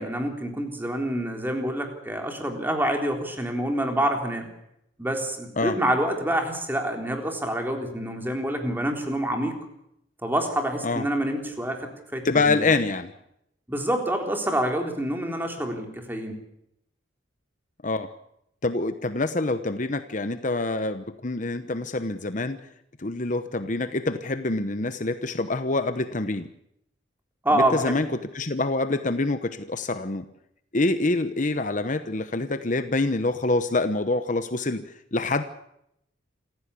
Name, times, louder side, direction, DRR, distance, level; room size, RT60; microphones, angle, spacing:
voice 1, 0.0-4.5 5.0-9.5 10.2-12.7 13.7-16.4 27.4-28.0, right 1 dB, 10° right, 3 dB, 3.7 m, -27 dB
voice 2, 12.2-13.1 17.8-18.1 18.6-22.6 23.0-26.5 27.5-30.2 30.7-34.8 35.1-35.4, left 2 dB, 40° left, 10 dB, 1.0 m, -26 dB
27.5 x 15.5 x 8.4 m, 0.78 s
head